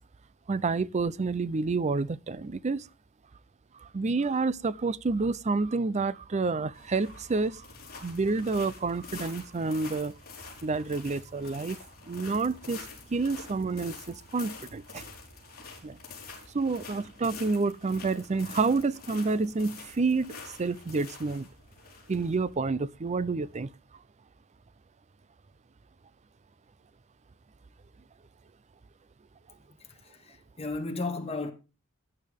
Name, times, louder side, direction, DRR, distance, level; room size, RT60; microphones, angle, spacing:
voice 1, 0.5-2.9 3.8-7.7 8.0-10.1 10.6-11.8 12.0-15.1 15.8-16.0 16.5-21.5 22.1-23.7, right 3 dB, 35° right, 0.5 m, -29 dB
sound 1, 6.7-23.6, left 4 dB, 45° left, 4.7 m, -47 dB
voice 2, 29.8-31.5, left 3 dB, 30° left, 2.2 m, -35 dB
15.5 x 9.8 x 3.5 m
head